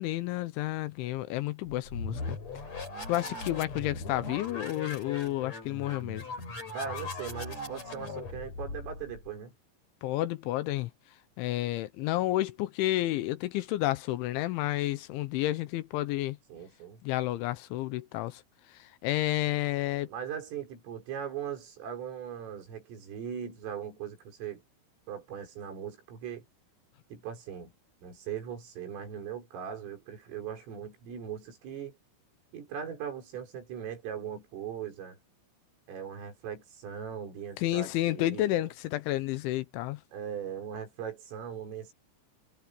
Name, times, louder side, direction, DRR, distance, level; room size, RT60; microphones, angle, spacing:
voice 1, 0.0-2.4 3.1-6.2 10.0-10.9 11.4-16.4 17.0-18.4 18.8-20.1 37.6-40.0, left 16 dB, 80° left, 3.0 m, -30 dB
sound 1, 1.7-9.3, left 3 dB, 35° left, 7.2 m, -39 dB
voice 2, 6.7-9.5 16.5-17.0 20.1-24.6 25.1-26.5 27.1-27.7 28.0-32.0 32.5-35.2 35.9-38.7 40.1-41.9, right 8 dB, 80° right, 8.1 m, -39 dB
omnidirectional pair, 5.8 m